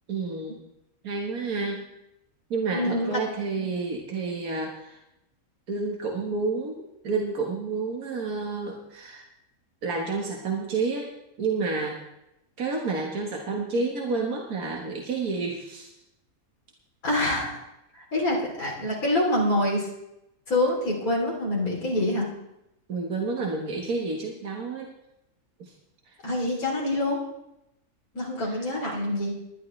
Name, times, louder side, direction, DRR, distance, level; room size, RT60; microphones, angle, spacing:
voice 1, 0.1-0.6 1.0-1.8 2.5-5.0 5.7-9.2 9.8-11.1 11.4-12.0 12.6-15.9 22.9-24.9 25.6-25.7 26.1-26.2 28.4-28.6, right 4 dB, 85° right, 0 dB, 2.0 m, -30 dB
voice 2, 2.7-3.2 3.5-3.7 17.0-17.6 17.9-19.9 20.5-22.3 26.2-27.2 28.1-29.3, left 1 dB, 80° left, -4 dB, 3.8 m, -26 dB
20.5 x 11.5 x 3.3 m, 0.86 s
omnidirectional pair, 1.5 m